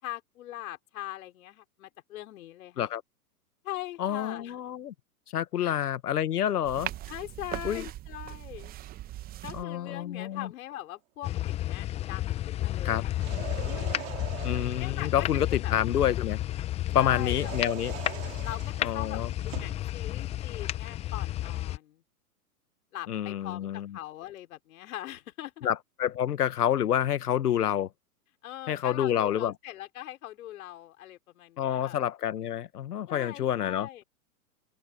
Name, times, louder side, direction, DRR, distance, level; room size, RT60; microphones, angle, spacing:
voice 1, 0.0-2.9 3.6-4.6 5.6-5.8 7.1-8.7 9.4-13.1 13.6-14.3 14.8-15.7 16.9-17.5 18.4-22.0 22.9-25.7 28.4-32.0 33.1-34.0, left 14 dB, 60° left, 4.6 m, -41 dB
voice 2, 4.0-4.9 5.3-6.9 7.6-7.8 9.5-10.5 12.8-13.0 14.4-16.4 16.9-17.9 18.8-19.3 23.1-23.9 25.6-27.9 28.7-29.5 31.6-34.0, left 10 dB, 80° left, 1.3 m, -28 dB
sound 1, 6.6-9.6, right 14 dB, 20° right, 0.8 m, -39 dB
sound 2, 11.2-21.8, left 14 dB, 15° left, 0.5 m, -32 dB
sound 3, 13.1-14.9 17.1-19.8, right 16 dB, 55° right, 3.4 m, -42 dB
open air
hypercardioid pair, 120°, 46 cm